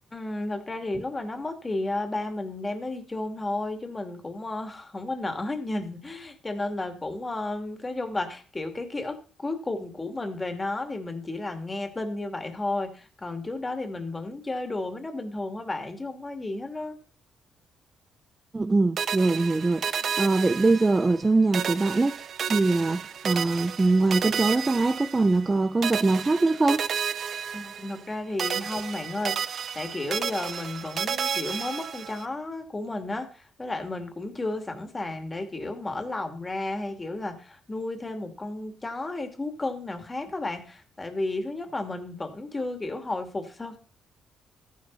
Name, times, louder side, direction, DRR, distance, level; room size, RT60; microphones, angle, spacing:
voice 1, 0.1-17.0 27.5-43.8, left 2 dB, 20° left, 2.6 m, -33 dB
voice 2, 18.5-22.2 22.5-26.9, right 3 dB, 20° right, 0.6 m, -23 dB
sound 1, 19.0-21.3 21.5-25.5 25.8-28.1 28.4-32.2, right 7 dB, 55° right, 0.7 m, -32 dB
13.5 x 10.5 x 4.1 m
cardioid pair, 90°, 0 cm